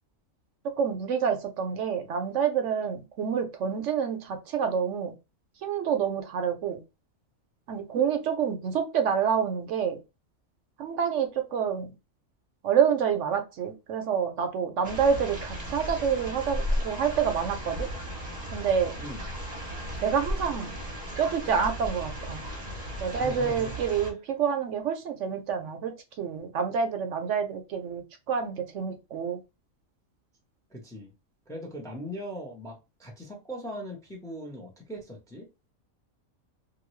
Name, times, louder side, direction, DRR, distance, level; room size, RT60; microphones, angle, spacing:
voice 1, 0.6-5.1 5.6-6.8 7.7-10.0 10.8-11.9 12.6-17.9 18.5-19.0 20.0-20.7 21.2-22.4 23.0-29.4, right 7 dB, 70° right, 0.9 m, -28 dB
sound 1, 14.8-24.1, equal, 40° right, 0.7 m, -35 dB
voice 2, 23.1-23.7 30.7-31.1 31.5-35.5, equal, 5° left, 0.6 m, -39 dB
2.6 x 2.6 x 3.0 m
omnidirectional pair, 1.4 m